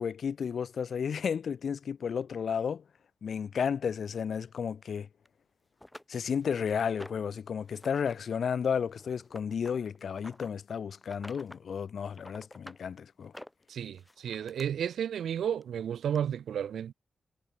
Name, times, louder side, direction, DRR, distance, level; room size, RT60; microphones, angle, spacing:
voice 1, 0.0-2.8 3.2-5.1 6.1-13.3, left 7 dB, 70° left, 0.3 m, -32 dB
sound 1, 5.3-5.4 5.8-7.4 7.7-8.2 8.4-10.5 11.0-11.6 12.0-12.8 13.2-14.7 15.6-15.7 16.2-16.3, left 1 dB, 10° left, 7.2 m, -49 dB
voice 2, 13.7-16.9, right 9 dB, 85° right, 0.8 m, -32 dB
cardioid pair, 70°, 0 cm